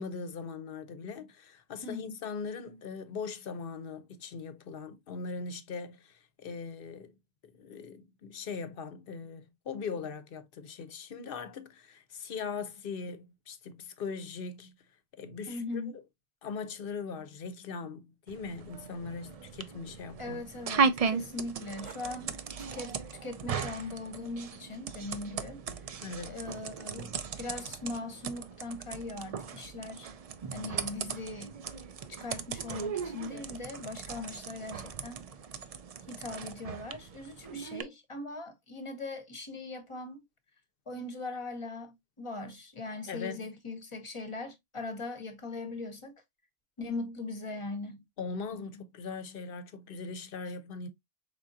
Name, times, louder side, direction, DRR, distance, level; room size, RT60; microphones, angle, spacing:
voice 1, 0.0-7.1 7.5-14.7 15.2-15.6 15.9-16.0 16.4-20.4 26.0-26.4 43.1-43.5 48.2-50.9, left 5 dB, 60° left, 0.9 m, -40 dB
voice 2, 1.8-2.2 15.5-15.9 20.2-23.0 23.2-25.6 26.2-30.1 30.5-31.5 32.1-35.2 36.1-40.2 40.9-46.1 46.8-48.0, left 3 dB, 30° left, 0.9 m, -40 dB
sound 1, 18.3-37.8, right 5 dB, 50° right, 0.4 m, -37 dB
5.1 x 3.7 x 2.6 m
omnidirectional pair, 1.1 m